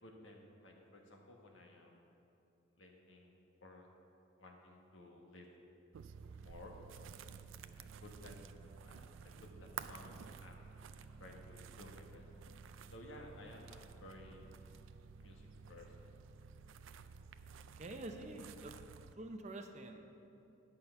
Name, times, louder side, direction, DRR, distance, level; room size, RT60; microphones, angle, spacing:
voice 1, 0.0-2.1 2.7-3.3 3.6-3.9 4.4-5.5 6.4-6.8 7.0-8.3 8.6-9.1 9.4-10.9 11.2-12.2 12.9-14.5 15.2-16.1, left 1 dB, 80° left, 0 dB, 1.4 m, -56 dB
sound 1, 5.9-19.1, right 6 dB, 85° right, 0.4 m, -53 dB
voice 2, 17.7-18.7 19.2-20.1, right 2 dB, 35° right, 5 dB, 0.6 m, -47 dB
9.7 x 5.7 x 6.9 m, 2.8 s
head